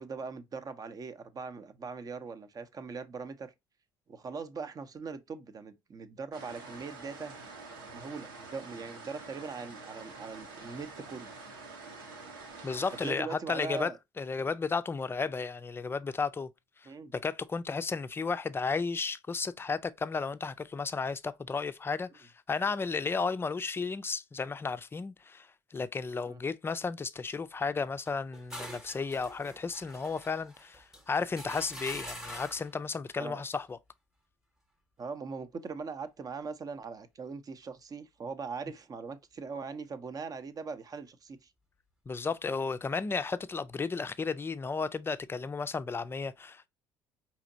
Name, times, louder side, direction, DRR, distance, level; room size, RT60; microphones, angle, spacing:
voice 1, 0.0-3.5 4.1-7.4 7.9-11.3 13.0-14.0 16.9-17.1 26.2-26.4 33.2-33.4 35.0-41.5, right 5 dB, 35° right, 0.7 m, -41 dB
sound 1, 6.3-13.1, right 3 dB, 75° right, 1.0 m, -47 dB
voice 2, 12.6-13.9 14.2-16.5 17.1-33.8 42.1-46.7, left 4 dB, 20° left, 0.5 m, -33 dB
sound 2, 28.0-32.7, equal, 5° right, 1.0 m, -45 dB
4.9 x 2.9 x 2.6 m
figure-of-eight pair, 55°, 11 cm